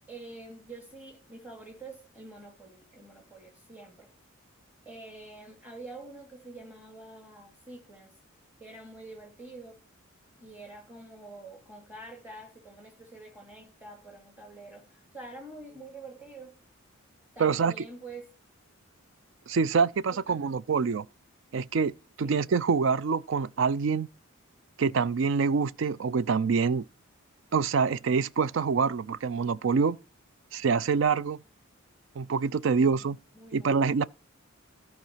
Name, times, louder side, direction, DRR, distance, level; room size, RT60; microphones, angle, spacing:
voice 1, 0.1-4.1 4.9-8.1 8.6-9.8 10.4-16.6 17.4-18.3 20.1-20.5 22.2-22.3 32.7-33.9, right 2 dB, 10° right, 2.3 m, -47 dB
voice 2, 17.4-17.8 19.5-21.0 21.5-21.9 22.2-24.1 24.8-26.8 27.5-30.0 30.5-31.4 32.2-33.2 33.5-34.1, right 5 dB, 60° right, 0.4 m, -26 dB
13.5 x 4.6 x 5.7 m
head